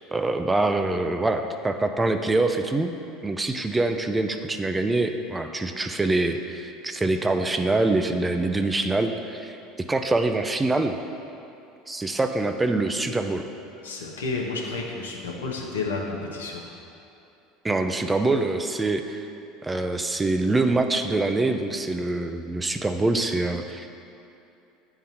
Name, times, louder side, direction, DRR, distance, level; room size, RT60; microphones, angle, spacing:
voice 1, 0.1-2.9 3.2-9.6 9.9-11.0 11.9-13.4 17.6-19.2 19.6-23.9, right 2 dB, 15° right, 7 dB, 0.4 m, -24 dB
voice 2, 13.8-16.6, left 3 dB, 80° left, -1 dB, 0.7 m, -31 dB
9.1 x 3.8 x 2.9 m, 2.7 s
hypercardioid pair, 75°, 0 cm